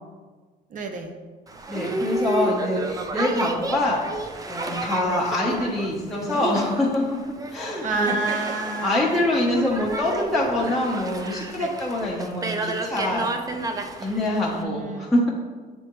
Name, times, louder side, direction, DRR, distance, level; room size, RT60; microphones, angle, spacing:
voice 1, 0.7-1.1 7.8-9.0 11.6-11.7 14.5-15.1, right 3 dB, 50° right, 5 dB, 0.8 m, -29 dB
Boat Water vehicle, 1.5-14.6, right 2 dB, 20° right, 0.5 m, -31 dB
voice 2, 1.7-7.2 7.5-8.1 8.8-13.3 14.0-15.3, left 1 dB, ahead, -6 dB, 0.9 m, -25 dB
8.9 x 3.5 x 3.0 m, 1.4 s
cardioid pair, 110°, 17 cm